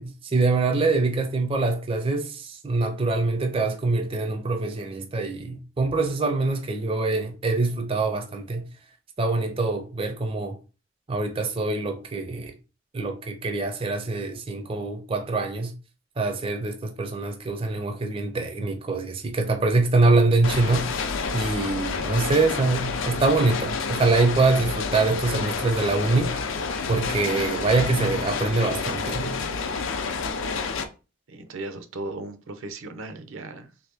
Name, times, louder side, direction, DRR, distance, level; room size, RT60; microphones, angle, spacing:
voice 1, 0.0-8.7 9.2-10.6 11.1-12.6 12.9-15.7 16.2-20.9 21.3-26.3 26.9-29.4, right 3 dB, 25° right, 0.4 m, -24 dB
sound 1, 20.4-30.8, left 4 dB, 75° left, 0.5 m, -29 dB
voice 2, 31.3-33.7, right 2 dB, 80° right, 0.6 m, -36 dB
3.4 x 2.8 x 3.4 m
head